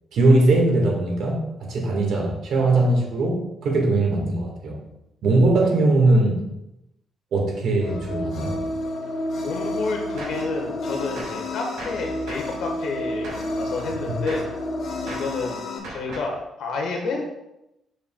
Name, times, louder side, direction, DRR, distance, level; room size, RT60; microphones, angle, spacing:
voice 1, 0.1-4.8 5.2-6.4 7.3-8.6 14.1-14.2, right 2 dB, 70° right, 0 dB, 1.7 m, -20 dB
sound 1, 7.8-15.8, left 1 dB, 65° left, 1.2 m, -30 dB
voice 2, 9.4-14.4 15.0-15.6 15.9-17.3, left 3 dB, 80° left, 1 dB, 1.4 m, -30 dB
Gunshot gunfire, 10.2-10.5 11.2-11.5 11.8-12.6 13.2-13.5 14.3-14.6 15.1-15.4 15.8-16.4, right 2 dB, 85° right, 1.9 m, -38 dB
6.6 x 6.3 x 2.3 m, 0.88 s
cardioid pair, 90°, 0 cm